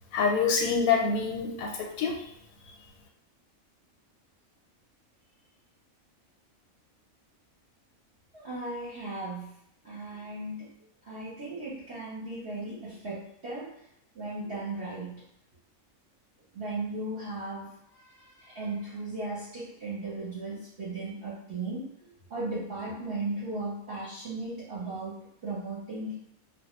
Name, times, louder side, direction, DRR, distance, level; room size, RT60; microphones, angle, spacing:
voice 1, 0.1-2.1, left 5 dB, 90° left, 1 dB, 1.0 m, -26 dB
voice 2, 8.3-9.5 9.8-10.7 11.0-13.7 14.1-15.2 16.5-21.9 22.3-26.2, right 2 dB, 55° right, -9 dB, 0.8 m, -36 dB
2.2 x 2.1 x 3.0 m, 0.73 s
omnidirectional pair, 1.4 m